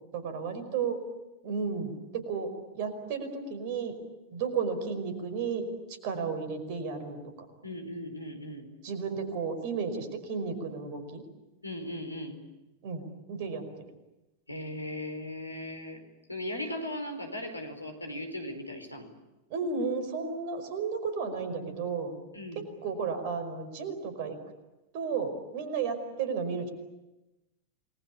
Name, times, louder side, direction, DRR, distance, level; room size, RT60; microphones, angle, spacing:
voice 1, 0.1-1.0 1.4-3.9 4.3-5.7 6.0-7.2 8.8-11.2 12.8-13.6 19.5-22.1 22.6-24.4 24.9-26.7, right 5 dB, 50° right, 9 dB, 5.2 m, -33 dB
voice 2, 7.6-8.7 11.6-12.4 14.5-16.0 16.3-19.1 22.3-22.7, left 1 dB, 85° left, 5 dB, 4.4 m, -38 dB
28.5 x 21.5 x 8.8 m, 1.0 s
figure-of-eight pair, 90°, 0 cm